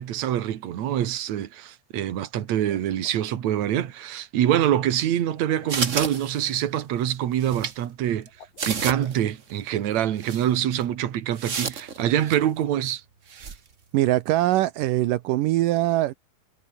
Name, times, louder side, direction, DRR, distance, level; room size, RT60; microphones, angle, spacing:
voice 1, 0.0-8.3 8.7-13.0 13.4-13.5, right 11 dB, 60° right, 2.7 m, -25 dB
sound 1, 2.5-3.4 5.3-6.2 8.3-9.4, left 6 dB, 75° left, 6.2 m, -50 dB
sound 2, 5.7-6.8 7.4-7.7 8.2-8.3 8.6-9.2 9.5-9.6 10.2-10.5 11.4-12.4 13.3-13.6, right 5 dB, 40° right, 1.1 m, -31 dB
voice 2, 13.9-16.1, right 15 dB, 80° right, 2.5 m, -22 dB
omnidirectional pair, 3.9 m